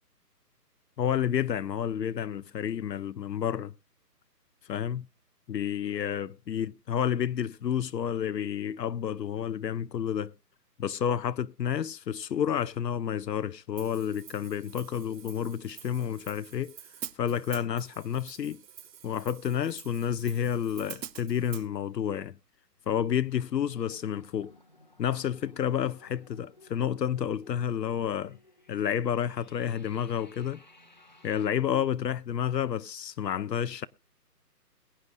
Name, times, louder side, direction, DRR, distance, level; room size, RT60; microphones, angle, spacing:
voice 1, 1.0-3.7 4.7-5.1 5.5-10.3 10.8-16.7 17.2-18.6 19.0-22.3 22.9-24.5 25.0-28.4 28.7-30.6 31.2-33.9, left 9 dB, 75° left, 0.7 m, -30 dB
Hi-hat, 13.8-21.7, right 9 dB, 80° right, 0.8 m, -47 dB
sound 1, 23.1-31.5, left 1 dB, 30° left, 0.8 m, -58 dB
22.0 x 9.7 x 2.5 m
hypercardioid pair, 175°, 49 cm